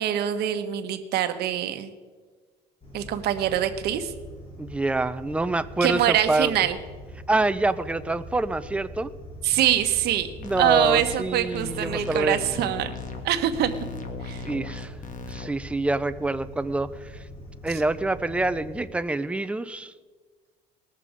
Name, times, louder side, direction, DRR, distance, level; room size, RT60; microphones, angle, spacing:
voice 1, 0.0-1.9 2.9-4.1 5.8-6.8 9.4-10.3 10.6-12.9 13.2-13.7 14.2-14.4, right 11 dB, 75° right, 9 dB, 1.0 m, -24 dB
sound 1, 2.8-18.8, equal, 30° left, 3.6 m, -43 dB
voice 2, 4.6-6.5 7.3-9.1 10.4-12.4 14.4-14.9 15.3-17.2 17.6-19.9, right 2 dB, 5° right, 13 dB, 0.5 m, -26 dB
sound 2, 10.4-11.2 11.5-13.2 13.5-15.5, left 4 dB, 50° left, 1.4 m, -37 dB
19.5 x 6.8 x 5.0 m, 1.4 s
cardioid pair, 110°, 17 cm